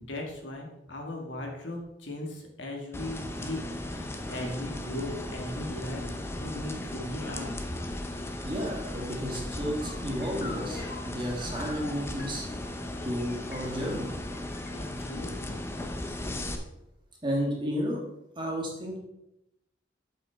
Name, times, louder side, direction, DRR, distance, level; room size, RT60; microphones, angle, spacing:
voice 1, 0.0-7.5 14.7-15.7, left 1 dB, 70° left, 1 dB, 1.6 m, -38 dB
sound 1, 2.9-16.6, left 1 dB, 15° left, 0.6 m, -36 dB
sound 2, 7.5-7.6 7.9-14.7, left 3 dB, 45° left, 1.1 m, -47 dB
voice 2, 8.4-12.4 13.0-14.2 17.2-18.0 18.3-19.0, equal, 25° right, -2 dB, 1.6 m, -32 dB
7.4 x 5.6 x 4.4 m, 0.86 s
head